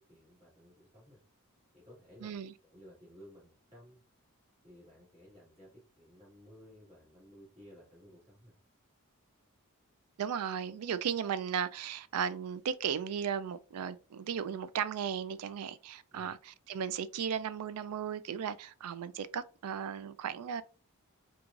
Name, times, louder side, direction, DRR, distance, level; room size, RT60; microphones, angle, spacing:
voice 1, 0.1-1.2 1.7-2.4 2.6-4.0 4.6-8.6 16.1-16.3, equal, 30° right, 2.0 m, -56 dB
voice 2, 2.2-2.5 10.2-20.6, right 8 dB, 80° right, 0.3 m, -36 dB
4.5 x 2.4 x 2.4 m
head